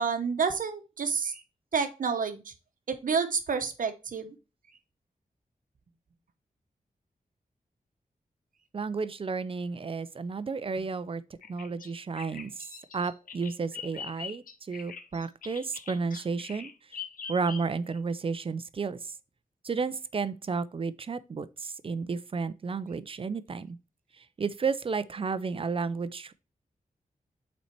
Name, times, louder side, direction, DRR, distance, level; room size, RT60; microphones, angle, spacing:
voice 1, 0.0-1.4 1.7-2.5 2.9-4.3, right 5 dB, 65° right, 0.9 m, -29 dB
voice 2, 8.7-11.2 11.5-17.0 17.3-19.2 19.6-23.8 24.1-26.3, right 4 dB, 40° right, 0.4 m, -32 dB
Bird vocalization bird call bird song, 11.4-18.0, left 6 dB, 70° left, 0.6 m, -43 dB
5.7 x 4.3 x 4.4 m
wide cardioid pair, 115°, 15 cm